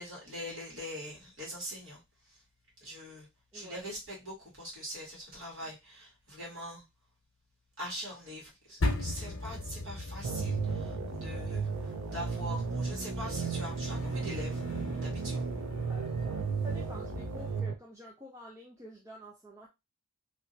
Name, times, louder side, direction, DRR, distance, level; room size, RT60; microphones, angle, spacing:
voice 1, 0.0-2.0 2.3-2.4 2.8-3.3 3.5-6.8 7.8-14.6 15.0-15.4, equal, 60° right, -4 dB, 1.9 m, -43 dB
voice 2, 3.5-3.9 5.6-5.7 15.9-16.1 16.6-19.7, equal, 15° right, -1 dB, 0.4 m, -48 dB
sound 1, 8.8-17.6, left 2 dB, 80° left, 0.8 m, -38 dB
sound 2, 10.2-17.7, right 5 dB, 85° right, 0.5 m, -35 dB
3.0 x 2.7 x 2.7 m, 0.23 s
head